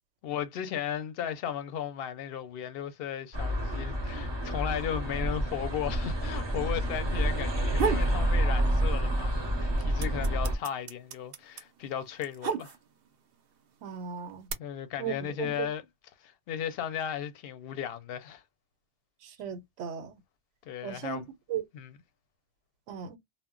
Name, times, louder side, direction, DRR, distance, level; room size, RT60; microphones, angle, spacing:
voice 1, 0.2-12.7 14.6-15.8 16.2-18.4 20.6-21.3 21.7-22.0, left 9 dB, 65° left, 0.7 m, -36 dB
sound 1, 3.3-10.5, right 1 dB, 30° right, 0.6 m, -29 dB
sound 2, 7.5-8.1 8.5-9.3 9.5-13.1 13.9-14.5, right 6 dB, 60° right, 0.7 m, -33 dB
voice 2, 13.8-14.5 15.0-15.7 19.2-20.2 20.8-21.2 21.5-21.6 22.9-23.2, right 8 dB, 85° right, 0.9 m, -36 dB
2.1 x 2.0 x 3.6 m
omnidirectional pair, 1.2 m